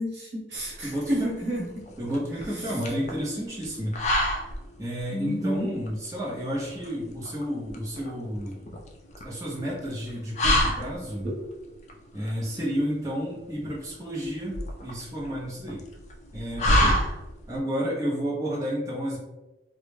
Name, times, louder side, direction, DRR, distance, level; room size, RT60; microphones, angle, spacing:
voice 1, 0.0-1.9 2.5-2.8 5.1-5.7 11.2-11.3, equal, 80° right, -4 dB, 0.9 m, -30 dB
sound 1, 0.6-17.6, left 1 dB, 40° left, 0.3 m, -30 dB
voice 2, 0.8-1.3 2.0-3.9 4.8-8.6 9.2-11.3 12.1-15.8 16.3-17.0 17.5-19.2, equal, 20° right, -6 dB, 0.5 m, -31 dB
2.1 x 2.0 x 3.1 m, 1.0 s
head